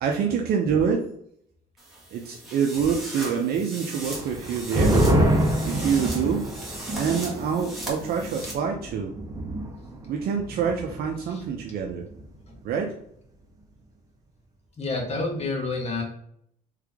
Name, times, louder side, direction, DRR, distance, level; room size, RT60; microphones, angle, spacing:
voice 1, 0.0-1.1 2.1-5.0 5.6-6.5 6.9-9.1 10.1-12.0 12.6-12.9, right 6 dB, 65° right, 1 dB, 0.6 m, -26 dB
sound 1, 1.8-8.5, right 1 dB, ahead, 1.6 m, -38 dB
sound 2, 4.1-11.1 11.4-11.5 11.9-12.3, right 1 dB, 20° right, 1.0 m, -26 dB
voice 2, 14.8-16.0, left 3 dB, 40° left, 0 dB, 1.4 m, -29 dB
3.7 x 3.4 x 3.5 m, 0.69 s
cardioid pair, 110°, 17 cm